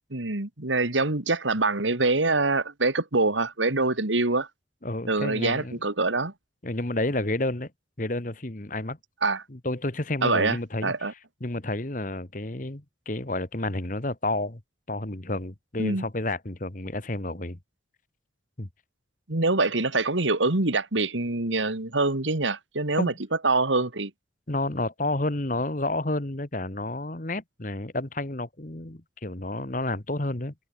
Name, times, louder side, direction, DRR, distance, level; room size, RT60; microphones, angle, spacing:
voice 1, 0.1-4.5 5.1-6.3 9.2-9.4 10.2-10.6 10.8-11.1 15.8-16.0 19.3-23.1 23.4-24.1, right 3 dB, 90° right, 2.4 m, -25 dB
voice 2, 4.8-5.8 6.6-7.7 8.0-9.0 9.5-14.6 14.9-17.6 18.6-18.7 23.0-23.2 24.5-30.5, left 2 dB, 45° left, 1.7 m, -30 dB
head